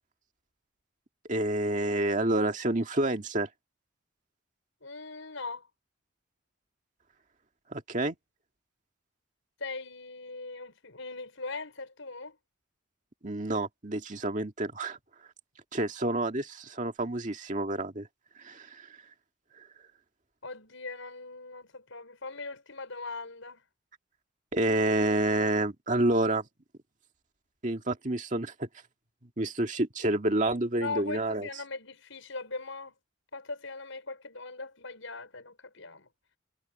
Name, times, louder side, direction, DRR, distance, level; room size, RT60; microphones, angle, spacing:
voice 1, 1.3-3.5 7.7-8.2 13.2-15.0 15.7-18.1 18.4-18.7 24.5-26.4 27.6-28.7 29.4-31.5, right 1 dB, 40° right, 1.9 m, -28 dB
voice 2, 4.8-5.7 9.6-12.4 20.4-23.6 30.8-33.0 33.3-36.1, left 3 dB, 75° left, 5.4 m, -40 dB
head